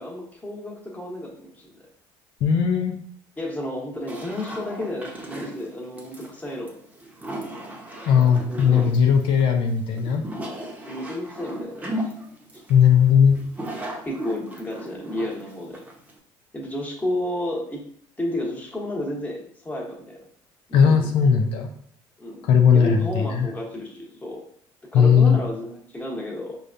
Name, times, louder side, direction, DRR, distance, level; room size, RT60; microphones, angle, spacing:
voice 1, 0.0-1.9 3.4-6.7 8.5-8.9 10.8-12.1 14.0-15.8 16.5-17.9 18.2-20.2 20.7-21.1 22.2-24.4 24.9-26.6, left 1 dB, 15° left, -2 dB, 1.2 m, -32 dB
voice 2, 2.4-2.9 8.0-10.2 12.7-13.4 20.7-21.7 22.4-23.5 24.9-25.4, left 7 dB, 70° left, 3 dB, 0.4 m, -18 dB
sound 1, 4.1-16.2, right 1 dB, 15° right, 0.8 m, -36 dB
5.0 x 2.3 x 2.6 m, 0.64 s
supercardioid pair, 90°, 9 cm